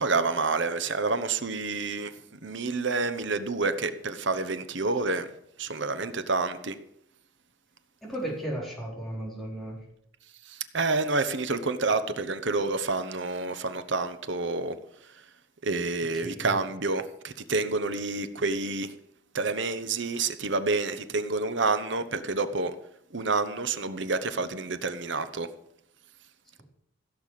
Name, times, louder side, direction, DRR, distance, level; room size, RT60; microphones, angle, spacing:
voice 1, 0.0-5.3 5.6-6.8 10.5-14.8 15.6-18.9 19.3-22.7 23.1-25.5, right 3 dB, 65° right, 1.0 m, -28 dB
voice 2, 8.0-9.8 16.1-16.6, right 1 dB, ahead, 4.2 m, -35 dB
16.0 x 6.9 x 7.6 m
head